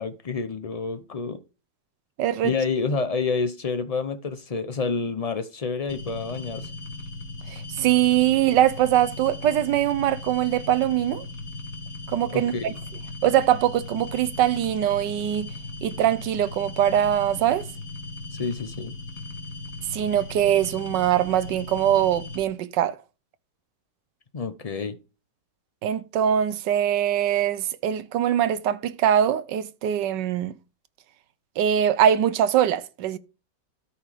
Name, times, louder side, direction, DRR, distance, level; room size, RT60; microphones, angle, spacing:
voice 1, 0.0-1.4 2.4-6.7 12.3-12.7 18.4-18.9 24.3-25.0, left 4 dB, 70° left, 0.3 m, -28 dB
voice 2, 2.2-2.5 7.5-11.2 12.1-12.7 13.2-15.5 15.8-17.7 19.9-23.0 25.8-30.5 31.6-33.2, right 11 dB, 80° right, 1.4 m, -22 dB
sound 1, 5.9-22.4, left 2 dB, 50° left, 2.2 m, -38 dB
13.0 x 5.5 x 5.0 m
omnidirectional pair, 1.9 m